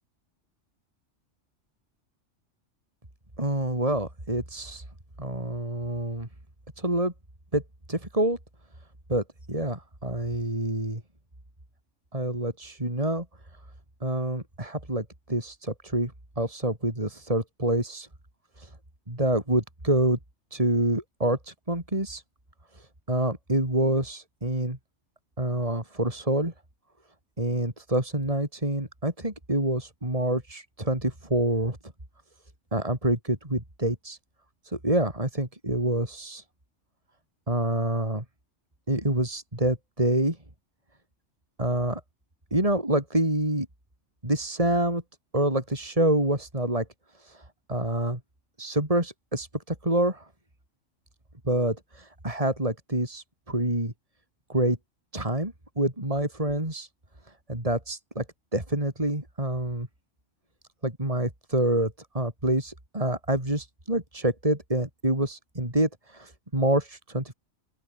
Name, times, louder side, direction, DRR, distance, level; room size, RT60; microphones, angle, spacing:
voice 1, 3.4-4.8 5.2-6.3 6.8-7.1 7.5-7.6 7.9-8.4 9.1-11.0 12.1-13.2 14.0-18.1 18.6-18.7 19.1-20.2 20.5-22.2 23.1-24.8 25.4-26.5 27.4-31.8 32.7-34.2 34.7-36.4 37.5-38.2 38.9-40.4 41.6-42.0 42.5-43.7 44.2-45.0 45.3-46.9 47.3-47.4 47.7-48.2 48.6-50.3 51.4-53.9 54.5-54.8 55.1-56.9 57.5-58.2 58.5-59.9 60.8-67.3, right 1 dB, 25° right, 5.0 m, -27 dB
open air
omnidirectional pair, 1.3 m